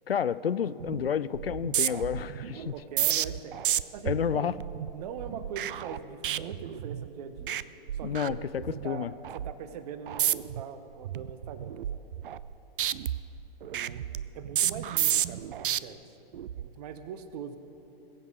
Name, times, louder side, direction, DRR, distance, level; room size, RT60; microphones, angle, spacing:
voice 1, 0.1-2.7 4.0-4.5 8.0-9.1, left 8 dB, 85° left, 17 dB, 0.5 m, -30 dB
sound 1, 0.8-1.1 1.3-7.1 7.4-7.6 7.9-8.8 9.2-9.5 10.1-10.6 11.0-12.5 12.8-15.8 16.3-16.7, right 11 dB, 65° right, 0.4 m, -31 dB
voice 2, 2.5-3.6 3.9-4.5 4.9-7.6 7.9-8.4 8.8-12.0 13.7-14.0 14.3-16.0 16.6-17.6, right 7 dB, 45° right, 11 dB, 0.9 m, -41 dB
21.5 x 8.1 x 4.8 m, 3.0 s
figure-of-eight pair, 110°, 29 cm